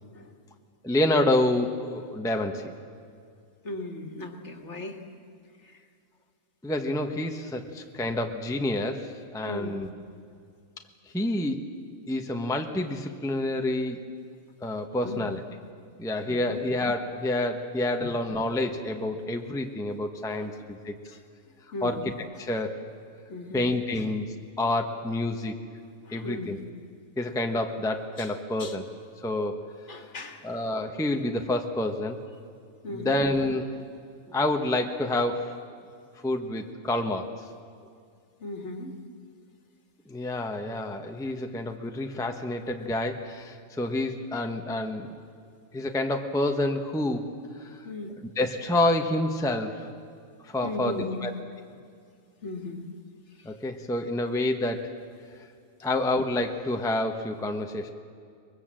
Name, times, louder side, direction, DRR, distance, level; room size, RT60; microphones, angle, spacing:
voice 1, 0.8-2.7 6.6-9.9 11.1-11.6 12.1-14.0 14.6-15.4 16.0-21.0 21.8-22.1 22.4-22.7 23.5-25.5 26.1-26.6 27.2-28.8 29.2-29.6 30.4-32.2 32.9-33.8 34.3-35.5 36.2-37.3 40.1-45.1 45.7-47.3 47.6-47.8 48.4-49.9 50.4-51.3 53.4-54.9 55.8-57.9, left 1 dB, 5° left, 4 dB, 0.9 m, -28 dB
voice 2, 3.6-5.0 5.6-5.8 9.4-9.8 15.0-15.4 16.3-16.6 20.3-20.5 21.0-21.2 21.7-22.0 23.3-23.7 24.0-24.1 26.1-26.6 28.2-28.3 28.6-28.8 29.9-30.4 32.8-33.3 38.4-38.9 47.8-48.1 50.6-51.2 52.4-52.9 53.4-53.5, left 2 dB, 50° left, 4 dB, 2.0 m, -37 dB
24.0 x 21.5 x 7.6 m, 2.2 s
omnidirectional pair, 1.6 m